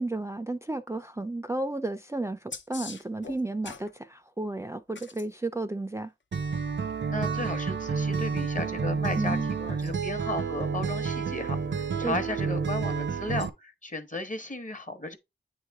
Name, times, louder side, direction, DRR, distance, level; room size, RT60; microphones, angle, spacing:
voice 1, 0.0-6.1 9.2-9.5 12.0-12.2, right 2 dB, 15° right, 0.3 m, -32 dB
sound 1, 2.5-3.9 4.9-5.2 7.4-7.5, left 5 dB, 75° left, 0.6 m, -41 dB
Acoustic guitar, 6.3-13.5, right 5 dB, 70° right, 0.5 m, -30 dB
voice 2, 7.1-15.2, left 2 dB, 40° left, 1.0 m, -35 dB
8.8 x 3.2 x 3.4 m
wide cardioid pair, 65°, 19 cm